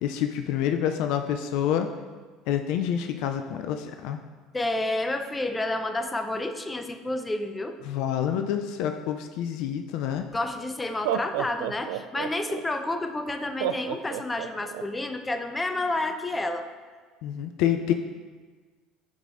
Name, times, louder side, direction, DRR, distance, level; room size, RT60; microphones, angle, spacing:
voice 1, 0.0-1.9 2.5-4.2 7.8-10.2 17.2-17.9, left 9 dB, 65° left, 7 dB, 0.4 m, -27 dB
voice 2, 4.5-7.8 10.3-16.7, left 2 dB, 15° left, 6 dB, 0.8 m, -30 dB
Laughter, 10.2-10.3 10.9-12.6 13.6-14.8, right 11 dB, 75° right, 0.3 m, -30 dB
14.0 x 4.8 x 2.6 m, 1.4 s
hypercardioid pair, 70°, 0 cm